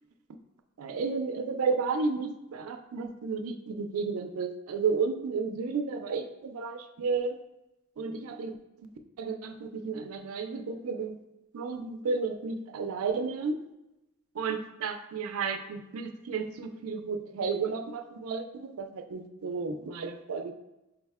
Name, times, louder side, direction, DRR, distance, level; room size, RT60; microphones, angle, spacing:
voice 1, 0.8-7.4 8.0-8.9 9.2-11.2 11.5-13.6 14.3-20.5, right 4 dB, 85° right, 7 dB, 0.4 m, -32 dB
4.9 x 2.1 x 3.4 m, 0.96 s
head